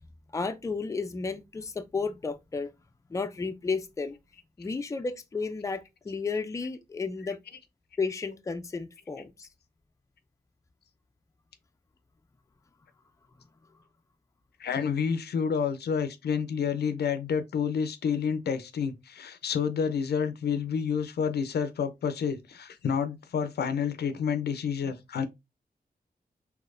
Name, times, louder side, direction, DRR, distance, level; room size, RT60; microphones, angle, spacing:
voice 1, 0.3-2.7 3.1-4.2 4.6-7.4 8.0-9.5, left 4 dB, 20° left, 0.4 m, -32 dB
voice 2, 14.6-25.3, left 6 dB, 85° left, 0.5 m, -29 dB
3.9 x 2.8 x 2.5 m
wide cardioid pair, 110°, 16 cm